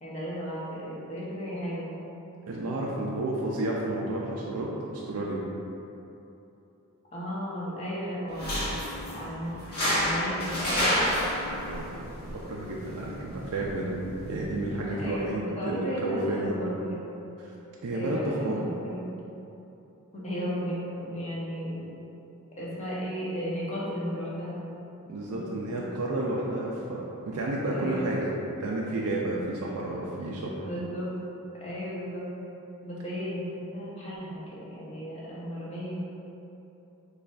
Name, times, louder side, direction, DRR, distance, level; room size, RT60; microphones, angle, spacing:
voice 1, 0.0-2.0 7.1-8.8 9.1-9.5 9.9-11.1 14.9-17.1 17.9-19.1 20.1-21.9 22.6-24.6 25.3-25.4 25.7-25.8 27.7-28.2 30.6-31.1 31.5-32.3 32.8-36.0, equal, 30° left, -7 dB, 0.8 m, -35 dB
voice 2, 2.5-5.4 11.6-16.5 17.4-17.5 17.8-18.6 25.1-28.3 28.6-30.5, right 2 dB, 80° right, -4 dB, 0.4 m, -31 dB
sound 1, 8.3-15.3, equal, 45° left, 1.2 m, -31 dB
6.6 x 2.4 x 2.4 m, 2.9 s
head